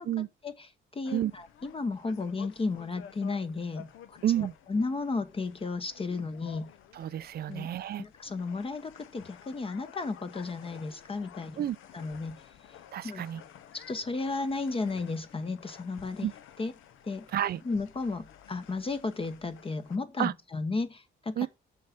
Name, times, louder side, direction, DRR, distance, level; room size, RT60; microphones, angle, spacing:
voice 1, 0.4-4.2 4.7-6.7 7.5-7.7 8.0-11.6 11.9-12.4 13.0-13.2 13.7-16.3 16.6-16.7 17.0-17.3 17.6-21.5, left 3 dB, 30° left, 0.9 m, -34 dB
sound 1, 1.0-20.0, left 9 dB, 85° left, 0.9 m, -52 dB
voice 2, 4.2-4.5 6.9-8.0 11.6-11.8 12.9-13.4 16.2-16.3 17.3-17.6 20.2-20.3 21.4-21.5, right 11 dB, 50° right, 0.5 m, -30 dB
7.5 x 5.7 x 5.8 m
cardioid pair, 90°, 20 cm